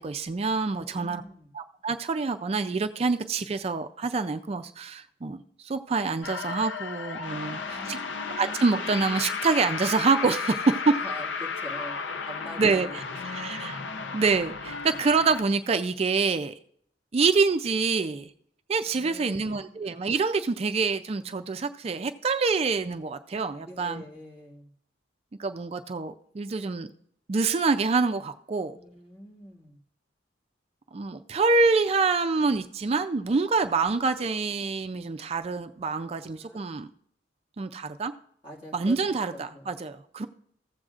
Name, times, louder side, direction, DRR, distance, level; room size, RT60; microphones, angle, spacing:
voice 1, 0.0-1.2 1.5-8.0 8.4-11.0 12.6-12.9 13.3-13.8 14.1-16.6 17.1-18.3 18.7-24.0 25.4-26.9 27.3-28.8 30.9-36.9 37.6-38.1 38.7-40.3, right 4 dB, 35° right, 9 dB, 0.4 m, -26 dB
voice 2, 0.7-1.5 7.3-8.2 10.9-13.1 18.9-19.7 23.6-24.7 28.7-29.8 36.2-36.8 38.4-39.0 39.3-39.7, equal, 30° left, -2 dB, 1.8 m, -44 dB
sound 1, 6.2-15.4, left 5 dB, 85° left, 0.6 m, -34 dB
15.0 x 7.7 x 2.4 m, 0.65 s
head